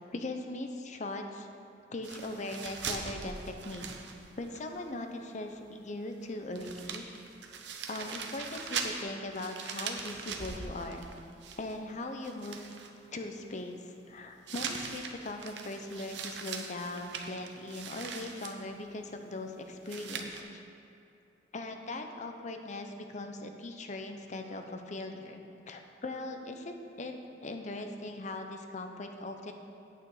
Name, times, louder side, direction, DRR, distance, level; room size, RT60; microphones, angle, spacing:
voice 1, 0.0-1.5 1.9-3.9 4.4-7.0 7.9-11.1 11.6-12.6 13.1-20.6 21.5-27.1 27.4-29.5, left 2 dB, 40° left, 5 dB, 0.7 m, -40 dB
sound 1, 2.0-4.6 4.9-5.0 6.2-6.3 6.5-11.9 12.2-12.9 14.5-18.6 19.9-20.4, right 5 dB, 70° right, 0.8 m, -41 dB
9.1 x 8.9 x 4.8 m, 2.8 s
head